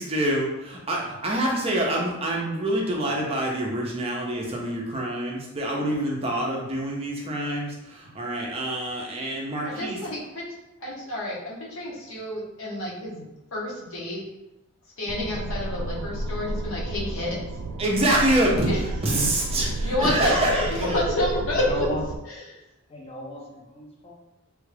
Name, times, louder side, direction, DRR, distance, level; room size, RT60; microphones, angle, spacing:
voice 1, 0.0-10.0 17.8-18.7 19.0-21.0, right 1 dB, 25° right, -2 dB, 0.5 m, -26 dB
voice 2, 9.6-10.4 10.8-13.3 13.5-14.2 15.0-17.4 18.7-18.8 19.8-21.9, left 1 dB, 65° left, -4 dB, 0.9 m, -29 dB
sound 1, 15.1-22.2, right 1 dB, 90° right, 0.3 m, -32 dB
voice 3, 21.6-22.0 22.9-24.1, left 1 dB, 25° left, -2 dB, 0.6 m, -34 dB
3.3 x 2.3 x 3.2 m, 0.95 s
head